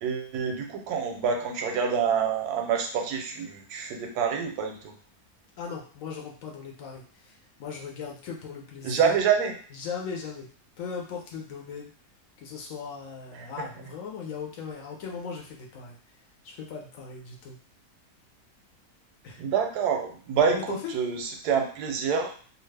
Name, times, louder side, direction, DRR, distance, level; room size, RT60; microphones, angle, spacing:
voice 1, 0.0-4.9 8.8-9.5 13.3-13.5 19.4-22.3, right 6 dB, 90° right, 4 dB, 1.1 m, -27 dB
voice 2, 5.6-9.1 9.7-10.5 10.8-11.9 12.4-16.0 16.4-17.6 19.2-19.4 20.5-20.9, left 6 dB, 65° left, 0 dB, 1.0 m, -38 dB
2.7 x 2.4 x 3.2 m, 0.43 s
omnidirectional pair, 1.6 m